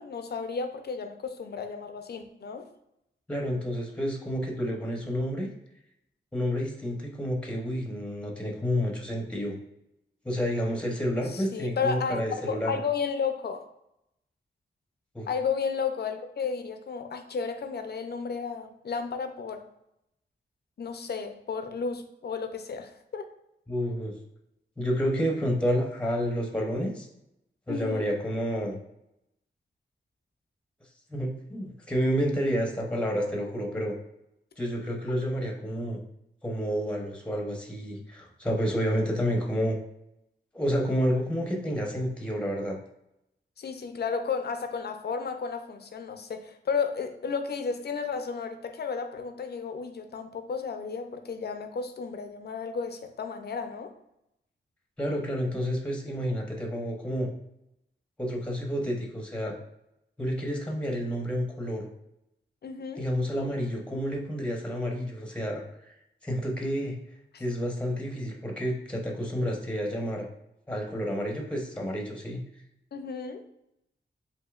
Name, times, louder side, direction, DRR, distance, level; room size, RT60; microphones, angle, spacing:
voice 1, 0.0-2.6 11.3-13.6 15.3-19.6 20.8-23.3 27.7-28.1 43.6-53.9 62.6-63.0 67.3-67.4 72.9-73.4, left 5 dB, 55° left, 7 dB, 0.6 m, -33 dB
voice 2, 3.3-5.5 6.3-9.6 10.2-12.8 15.1-15.3 23.7-24.1 24.8-27.1 27.7-28.8 31.1-34.0 34.6-36.0 36.4-39.8 40.5-42.8 55.0-57.3 58.2-59.6 60.2-61.9 63.0-65.6 66.2-66.9 67.4-70.3 70.7-72.4, equal, 5° left, 0 dB, 0.8 m, -29 dB
7.9 x 2.7 x 2.4 m, 0.83 s
wide cardioid pair, 135°, 20 cm